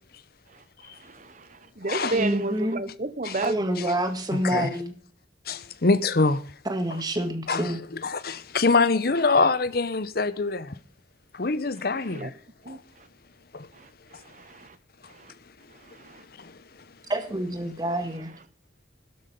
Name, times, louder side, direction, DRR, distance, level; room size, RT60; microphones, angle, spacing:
voice 1, 0.9-3.7 11.9-12.3 12.6-12.8 13.7-13.9 14.2-14.8 15.1-15.3 15.9-16.2, right 2 dB, 45° right, 1.0 m, -32 dB
voice 2, 2.1-2.8 3.4-4.9 6.7-7.8 17.1-18.3, right 1 dB, 25° right, 1.9 m, -27 dB
voice 3, 4.3-4.7 5.5-6.4 7.5-7.7 8.0-10.7 11.3-12.3 12.7-12.8 13.5-13.7 16.4-16.5, left 3 dB, 60° left, 0.9 m, -24 dB
12.5 x 12.0 x 5.3 m
head